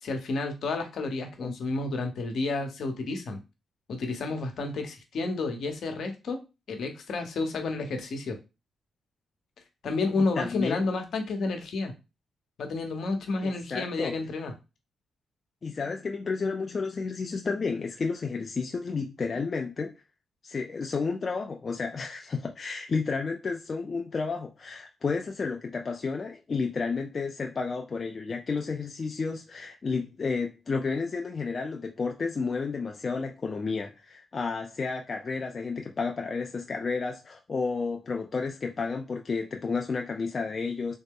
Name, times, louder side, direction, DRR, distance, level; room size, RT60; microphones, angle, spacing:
voice 1, 0.0-3.4 3.9-6.4 6.7-8.4 9.8-11.9 12.6-14.5, left 3 dB, 70° left, 5 dB, 0.9 m, -30 dB
voice 2, 10.2-10.8 13.4-14.1 15.6-19.9 20.4-41.0, left 4 dB, 40° left, 2 dB, 0.4 m, -31 dB
3.7 x 2.1 x 3.6 m, 0.27 s
cardioid pair, 80°, 0 cm